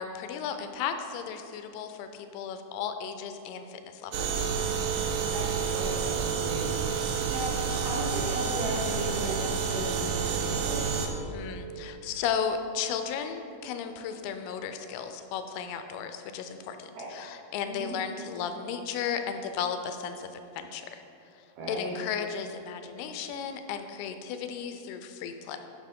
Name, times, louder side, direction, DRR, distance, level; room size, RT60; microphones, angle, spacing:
voice 1, 0.0-4.5 11.3-21.0 21.7-25.6, left 7 dB, 85° left, 8 dB, 2.5 m, -35 dB
sound 1, 4.1-11.1, right 6 dB, 85° right, 1.9 m, -29 dB
voice 2, 5.3-6.7 7.3-7.5 7.8-10.8 17.0-17.1 17.6-18.0 21.6-22.0, right 1 dB, 70° right, -4 dB, 2.1 m, -36 dB
9.6 x 5.9 x 3.6 m, 2.7 s
omnidirectional pair, 4.5 m